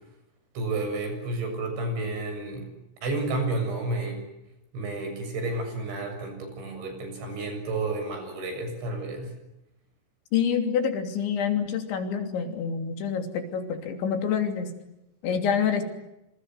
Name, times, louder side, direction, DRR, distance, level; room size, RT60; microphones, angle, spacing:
voice 1, 0.6-2.7 3.0-4.3 4.7-9.3, right 2 dB, 85° right, 5 dB, 9.7 m, -31 dB
voice 2, 10.3-14.7 15.2-15.8, left 7 dB, 85° left, 6 dB, 5.3 m, -27 dB
27.0 x 26.5 x 8.0 m, 0.92 s
omnidirectional pair, 5.1 m